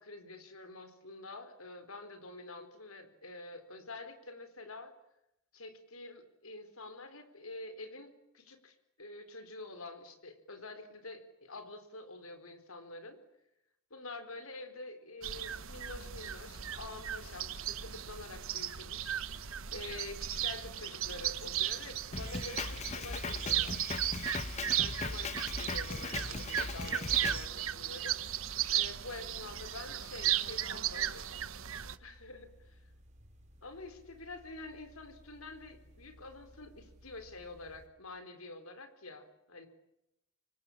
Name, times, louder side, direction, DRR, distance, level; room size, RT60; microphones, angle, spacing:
voice 1, 0.0-4.9 5.5-8.1 8.3-13.2 13.9-19.4 19.7-23.8 24.6-25.3 25.6-31.3 32.0-32.5 33.6-39.7, left 2 dB, 80° left, 9 dB, 4.2 m, -47 dB
sound 1, 15.2-32.0, right 11 dB, 70° right, 1.2 m, -36 dB
Drum kit, 22.1-27.5, left 3 dB, 35° left, 1.0 m, -39 dB
sound 2, 22.4-37.9, equal, 35° right, 5.8 m, -59 dB
27.0 x 24.0 x 8.7 m, 0.87 s
head